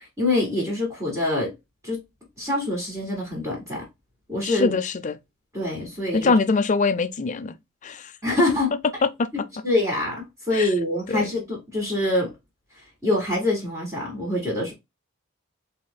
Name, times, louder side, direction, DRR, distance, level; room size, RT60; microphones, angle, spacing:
voice 1, 0.2-1.5 1.8-2.0 2.4-3.8 4.3-4.7 5.5-6.3 8.2-8.8 9.6-12.3 13.0-14.7, left 1 dB, 15° right, 2.1 m, -25 dB
voice 2, 4.4-5.2 6.1-7.6 7.8-8.1 9.2-9.3 10.5-10.7 11.1-11.3, left 4 dB, 40° left, 0.4 m, -23 dB
4.1 x 3.5 x 2.2 m
head